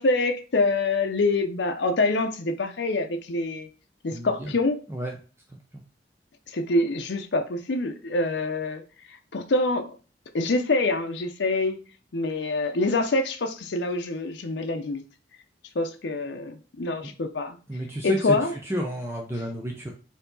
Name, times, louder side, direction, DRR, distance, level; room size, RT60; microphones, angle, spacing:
voice 1, 0.0-3.7 4.0-4.8 6.5-8.8 9.1-10.0 10.3-11.8 12.1-15.0 15.7-17.6 18.0-18.5, left 2 dB, 75° left, 0.6 m, -25 dB
voice 2, 4.1-4.6 4.9-5.1 5.7-5.8 17.0-17.1 17.7-19.9, right 1 dB, 15° right, 0.6 m, -31 dB
4.5 x 2.8 x 3.9 m
head